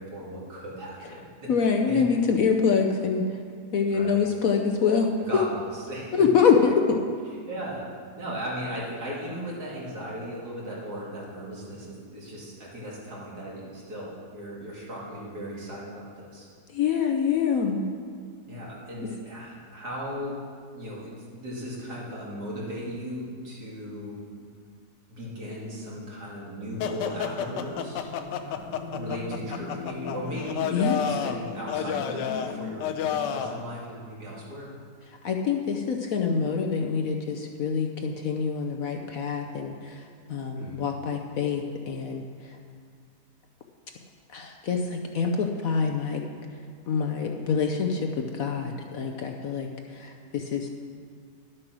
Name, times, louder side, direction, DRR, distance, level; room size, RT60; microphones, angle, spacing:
voice 1, 0.0-1.5 1.9-2.0 3.9-4.3 5.2-6.2 7.5-7.9 8.2-16.5 18.5-20.4 20.7-24.2 25.2-34.7 40.6-40.8, equal, 60° right, -5 dB, 3.0 m, -37 dB
voice 2, 1.5-3.3 3.7-5.1 6.1-7.0 16.7-17.8 30.7-31.1 35.2-40.0 40.3-42.2 44.3-46.2 46.9-50.7, left 6 dB, 60° left, 3 dB, 1.0 m, -25 dB
sound 1, 26.8-33.6, left 7 dB, 80° left, 1.2 m, -31 dB
11.0 x 7.6 x 6.1 m, 2.1 s
omnidirectional pair, 1.9 m